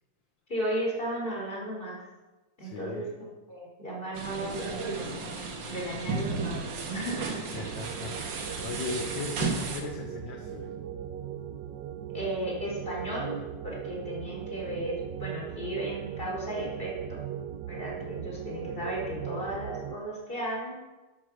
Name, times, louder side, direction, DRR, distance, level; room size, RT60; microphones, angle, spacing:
voice 1, 0.5-2.0 2.6-5.2 5.7-6.6 6.9-7.4 12.1-13.4 13.6-17.2 17.7-20.8, right 1 dB, 25° left, -2 dB, 4.5 m, -35 dB
voice 2, 2.6-3.1 7.1-10.8, left 4 dB, 65° left, 3 dB, 1.8 m, -39 dB
sound 1, 4.2-9.8, right 4 dB, 60° right, 2.3 m, -34 dB
sound 2, 7.5-20.0, right 9 dB, 80° right, 0.9 m, -38 dB
11.5 x 11.5 x 6.4 m, 1.1 s
omnidirectional pair, 2.3 m